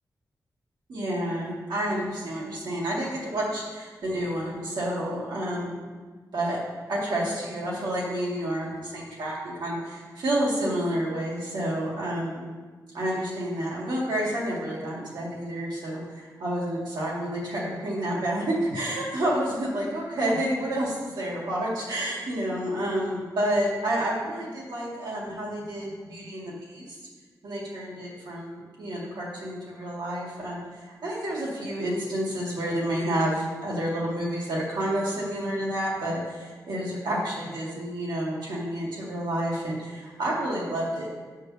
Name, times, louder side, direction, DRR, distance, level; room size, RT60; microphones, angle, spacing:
voice 1, 0.9-5.8 6.3-6.6 6.9-12.4 12.9-27.0 27.4-41.1, right 1 dB, 90° right, -5 dB, 2.2 m, -29 dB
8.0 x 6.8 x 3.4 m, 1.4 s
wide cardioid pair, 150°, 7 cm